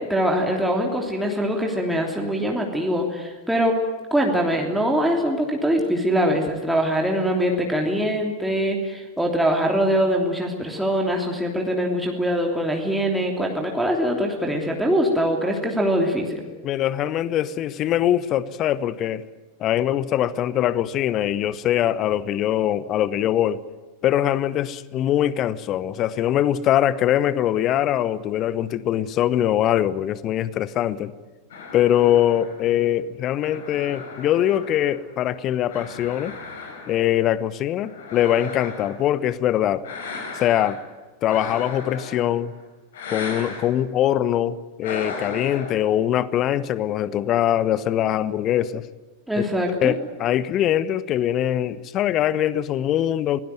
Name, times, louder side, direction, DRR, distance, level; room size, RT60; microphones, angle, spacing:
voice 1, 0.0-3.8 4.1-16.4 49.3-49.9, equal, 5° right, 3.1 m, -23 dB
voice 2, 16.6-19.2 19.6-23.6 24.0-31.1 31.7-36.4 36.9-39.9 40.3-40.8 41.2-42.5 43.1-48.9 49.4-49.5 49.8-53.4, left 11 dB, 35° left, 1.0 m, -22 dB
sound 1, 31.5-35.2 35.7-37.2 37.8-39.1 39.8-40.9 41.3-42.5 42.9-43.7 44.8-45.7, left 4 dB, 60° left, 5.0 m, -36 dB
24.0 x 18.5 x 9.3 m
figure-of-eight pair, 90°, 0 cm